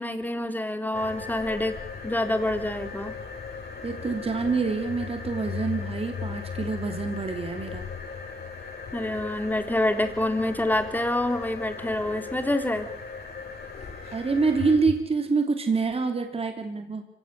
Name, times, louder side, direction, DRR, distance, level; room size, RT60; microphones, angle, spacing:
voice 1, 0.0-1.8 2.0-3.1 8.9-12.9, left 1 dB, 10° left, 7 dB, 3.6 m, -27 dB
sound 1, 0.9-15.0, left 5 dB, 50° left, 7.6 m, -37 dB
voice 2, 3.8-7.9 14.1-17.1, right 4 dB, 30° right, 6 dB, 3.0 m, -26 dB
25.5 x 17.0 x 9.9 m, 0.76 s
cardioid pair, 90°, 20 cm